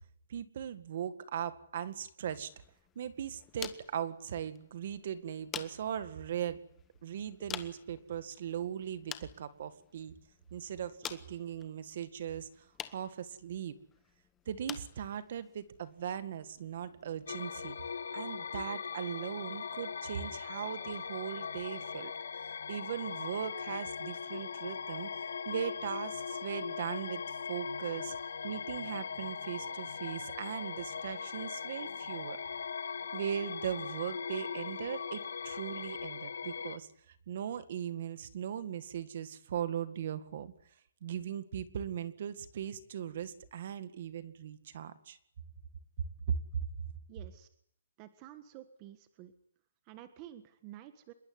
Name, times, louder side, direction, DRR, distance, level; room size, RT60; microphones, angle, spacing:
voice 1, 0.3-2.5 3.0-6.6 7.0-10.2 10.5-12.5 12.9-13.7 14.5-17.8 18.1-22.1 22.7-25.1 25.5-28.2 28.4-32.4 33.1-40.5 41.0-45.2 46.0-46.4, right 9 dB, 40° right, 13 dB, 1.9 m, -39 dB
sound 1, 2.4-17.4, left 9 dB, 10° left, 1.1 m, -50 dB
sound 2, 17.3-36.8, left 6 dB, 80° left, 1.7 m, -40 dB
voice 2, 47.1-47.5 48.0-49.3 49.8-51.1, right 13 dB, 20° right, 10 dB, 1.5 m, -51 dB
27.0 x 22.0 x 9.7 m, 0.69 s
hypercardioid pair, 175°, 0 cm